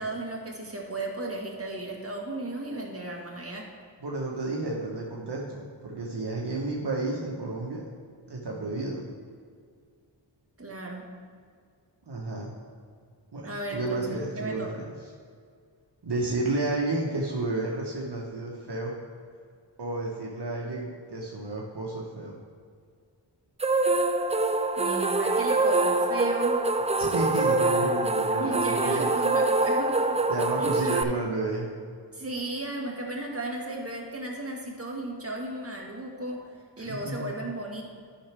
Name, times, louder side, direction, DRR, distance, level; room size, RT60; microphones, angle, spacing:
voice 1, 0.0-3.7 10.6-11.1 13.4-14.7 24.8-26.7 28.4-30.2 30.6-31.2 32.1-36.4 36.8-37.8, right 2 dB, 30° right, -1 dB, 1.6 m, -35 dB
voice 2, 4.0-7.8 8.3-9.0 12.1-12.5 13.3-14.9 16.0-18.9 19.8-22.4 27.0-29.1 30.3-31.7 36.8-37.3, right 2 dB, 65° right, -3 dB, 1.2 m, -31 dB
sound 1, 23.6-31.0, right 2 dB, 15° right, 0.4 m, -25 dB
11.5 x 5.9 x 3.5 m, 2.1 s
wide cardioid pair, 55°, 45 cm